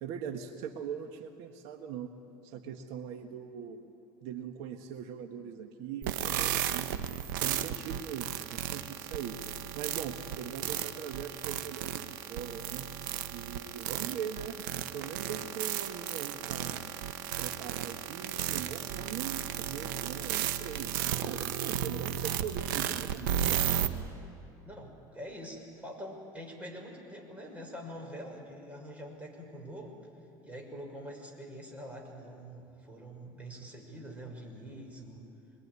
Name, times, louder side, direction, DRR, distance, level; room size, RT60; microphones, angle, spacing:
voice 1, 0.0-2.1 2.4-3.8 4.2-6.9 7.4-9.4 9.7-12.9 13.3-16.8 17.4-23.9, right 8 dB, 70° right, 5 dB, 1.6 m, -41 dB
sound 1, 6.0-23.9, right 10 dB, 90° right, 1.2 m, -34 dB
voice 2, 24.7-30.0 30.4-35.3, equal, 15° right, 1 dB, 6.2 m, -45 dB
25.0 x 22.5 x 9.8 m, 2.7 s
supercardioid pair, 120°, 11 cm